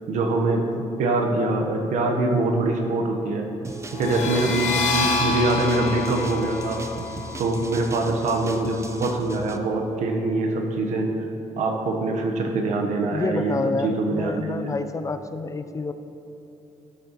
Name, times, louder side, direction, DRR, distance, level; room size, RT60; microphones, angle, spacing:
voice 1, 0.1-0.6 1.0-3.5 3.9-6.8 7.4-11.1 11.6-14.7, right 2 dB, 80° right, 3 dB, 1.1 m, -24 dB
sound 1, 3.6-9.6, right 3 dB, 25° right, 0.5 m, -38 dB
sound 2, 3.9-9.3, left 4 dB, 80° left, 1.2 m, -29 dB
voice 2, 13.1-15.9, left 3 dB, 25° left, 9 dB, 0.5 m, -28 dB
12.5 x 6.6 x 3.0 m, 2.9 s
cardioid pair, 90°, 12 cm